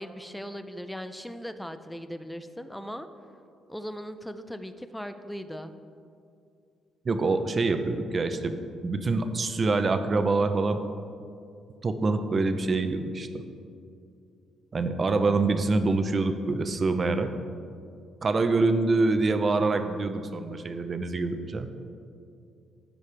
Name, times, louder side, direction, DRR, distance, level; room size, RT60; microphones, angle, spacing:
voice 1, 0.0-3.1 3.7-5.7, equal, 5° left, 10 dB, 0.5 m, -38 dB
voice 2, 7.0-10.8 11.8-13.4 14.7-17.3 18.2-21.7, right 3 dB, 40° right, 8 dB, 0.6 m, -25 dB
14.0 x 5.1 x 3.3 m, 2.4 s
cardioid pair, 90°, 0 cm